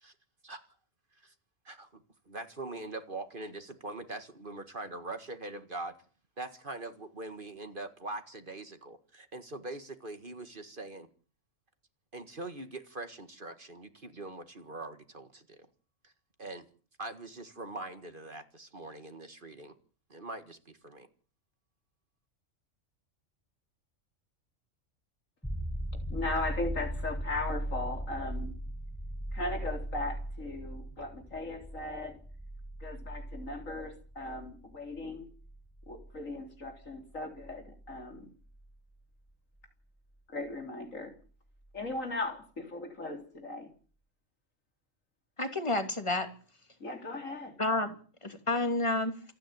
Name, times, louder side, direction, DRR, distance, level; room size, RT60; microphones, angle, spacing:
voice 1, 1.7-2.0 2.3-6.0 6.4-11.1 12.1-15.6 16.0-16.1 16.4-16.7 17.0-19.7 20.1-21.1, right 2 dB, 40° right, 9 dB, 2.0 m, -42 dB
sound 1, 25.4-38.9 41.7-41.8, right 1 dB, ahead, 2.0 m, -39 dB
voice 2, 26.1-28.6 29.3-32.2 32.8-35.3 35.9-38.3 40.3-41.1 41.7-43.7 46.8-47.6, left 2 dB, 80° left, 4 dB, 4.2 m, -38 dB
voice 3, 45.4-46.3 47.6-48.0 48.2-49.1, left 2 dB, 25° left, 7 dB, 2.8 m, -29 dB
27.0 x 10.0 x 9.5 m, 0.43 s
omnidirectional pair, 1.3 m